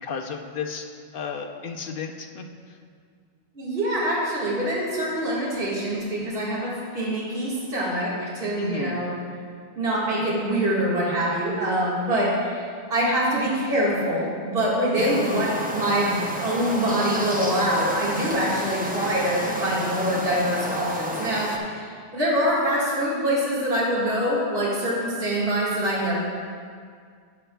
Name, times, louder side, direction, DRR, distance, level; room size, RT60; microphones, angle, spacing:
voice 1, 0.0-0.9 1.1-2.5 8.6-9.0 15.0-15.1, left 5 dB, 60° left, 4 dB, 0.7 m, -32 dB
voice 2, 3.5-9.1 9.8-26.1, right 1 dB, 50° right, -7 dB, 1.9 m, -25 dB
sound 1, 15.0-21.6, equal, 15° right, 0.3 m, -31 dB
12.0 x 7.9 x 2.2 m, 2.1 s
omnidirectional pair, 1.2 m